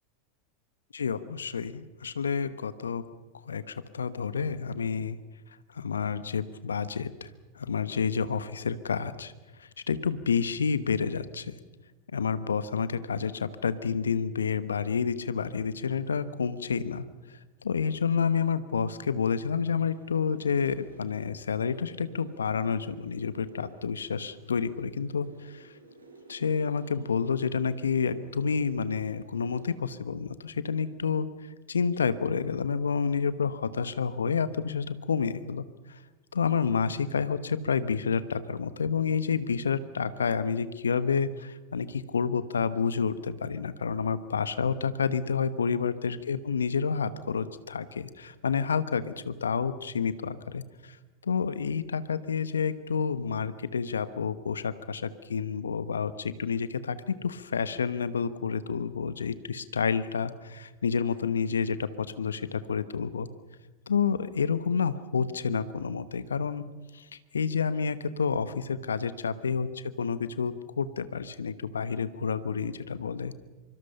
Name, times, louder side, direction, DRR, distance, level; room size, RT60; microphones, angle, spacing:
voice 1, 0.9-3.0 3.5-5.2 5.7-7.3 7.6-9.3 9.9-11.5 12.1-17.0 17.6-25.7 26.3-31.3 31.7-35.7 36.3-50.6 51.2-63.3 63.9-66.7 66.9-67.0 67.3-69.7 70.0-73.3, left 6 dB, 80° left, 14 dB, 1.1 m, -29 dB
sound 1, 19.7-29.7, right 2 dB, 85° right, 6.4 m, -52 dB
24.5 x 24.5 x 5.7 m, 1.2 s
figure-of-eight pair, 90°, 0 cm